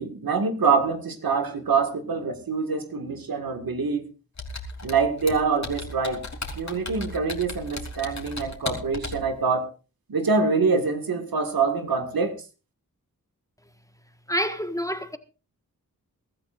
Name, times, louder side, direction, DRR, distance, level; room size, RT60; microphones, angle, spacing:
voice 1, 0.0-4.1 4.8-6.2 6.6-9.7 10.1-12.4, right 4 dB, 85° right, 2.0 m, -25 dB
Computer keyboard, 4.4-9.3, left 2 dB, 50° left, 3.0 m, -36 dB
voice 2, 14.3-15.2, equal, 10° left, 1.5 m, -27 dB
23.0 x 13.0 x 2.5 m
wide cardioid pair, 65°, 34 cm